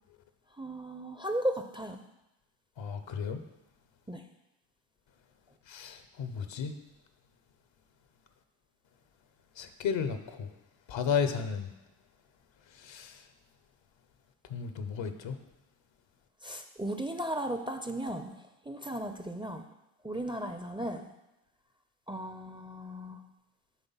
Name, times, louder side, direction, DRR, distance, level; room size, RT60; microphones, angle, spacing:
voice 1, 0.6-2.0 4.1-4.2 16.4-18.4 18.7-19.6 20.0-21.1 22.1-23.2, right 1 dB, 10° right, 7 dB, 0.5 m, -35 dB
voice 2, 2.8-3.4 5.7-6.8 9.6-10.5 10.9-11.7 12.8-13.2 14.5-15.3, left 6 dB, 60° left, 9 dB, 0.8 m, -33 dB
8.2 x 3.3 x 5.6 m, 0.93 s
supercardioid pair, 45°, 50 cm